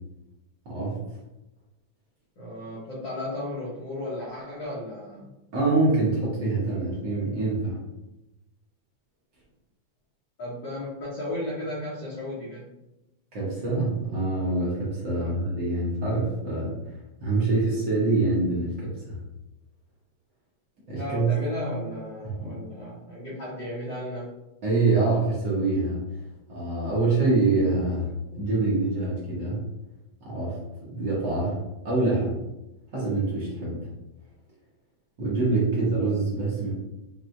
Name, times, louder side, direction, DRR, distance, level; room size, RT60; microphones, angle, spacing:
voice 1, 0.6-1.0 5.5-7.8 13.3-16.7 17.2-19.2 20.9-21.3 22.2-22.6 24.6-26.0 26.5-29.6 30.2-31.6 31.8-32.4 32.9-33.8 35.2-36.7, right 3 dB, 55° right, -7 dB, 1.2 m, -25 dB
voice 2, 2.4-5.2 10.4-12.7 15.1-15.4 21.0-24.3, left 1 dB, 55° left, -9 dB, 1.3 m, -34 dB
6.0 x 2.4 x 2.6 m, 0.97 s
omnidirectional pair, 3.3 m